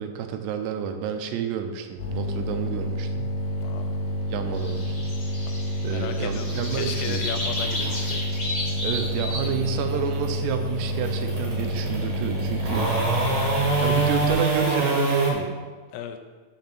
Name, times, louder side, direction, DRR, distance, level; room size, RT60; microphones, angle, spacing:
voice 1, 0.0-3.4 4.3-5.1 5.8-7.2 8.8-12.9 13.8-15.6, right 7 dB, 90° right, 7 dB, 2.9 m, -29 dB
sound 1, 2.0-14.3, equal, 65° left, 1.7 m, -29 dB
sound 2, 3.4-15.3, right 3 dB, 50° right, 2.8 m, -28 dB
voice 2, 3.6-3.9 5.5-8.2 15.9-16.2, left 9 dB, 90° left, 7 dB, 2.8 m, -36 dB
sound 3, 4.5-9.5, left 1 dB, 30° left, 1.6 m, -33 dB
6.7 x 5.4 x 5.9 m, 1.4 s
omnidirectional pair, 4.8 m